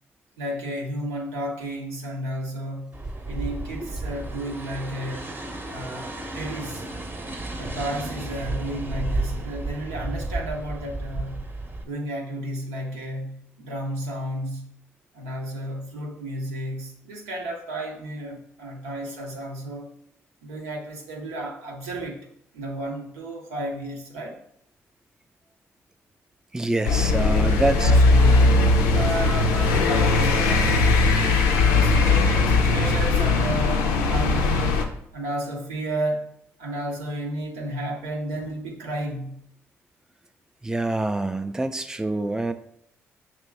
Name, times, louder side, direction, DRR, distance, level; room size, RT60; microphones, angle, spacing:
voice 1, 0.4-2.9 3.2-5.3 5.7-6.9 7.6-11.5 11.8-14.7 15.1-19.9 20.4-22.2 22.5-24.4 27.5-28.7 28.9-31.3 31.6-36.3 36.6-39.4, right 1 dB, 85° right, 0 dB, 0.7 m, -32 dB
sound 1, 2.9-11.8, right 2 dB, 30° right, 0.8 m, -32 dB
voice 2, 26.5-27.9 40.6-42.5, right 2 dB, 10° right, 9 dB, 0.4 m, -26 dB
sound 2, 26.8-34.8, left 3 dB, 80° left, 0.4 m, -19 dB
5.1 x 3.0 x 3.4 m, 0.70 s
hypercardioid pair, 45°, 7 cm